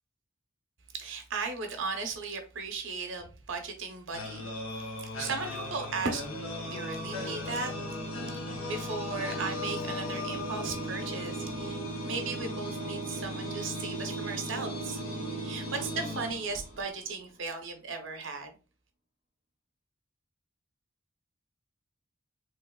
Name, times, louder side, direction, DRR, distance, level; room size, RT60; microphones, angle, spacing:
voice 1, 0.9-7.7 8.2-15.0 15.4-18.6, right 4 dB, 65° right, 0.7 m, -37 dB
sound 1, 4.1-17.0, equal, 80° left, 1.0 m, -36 dB
3.4 x 2.9 x 2.2 m
head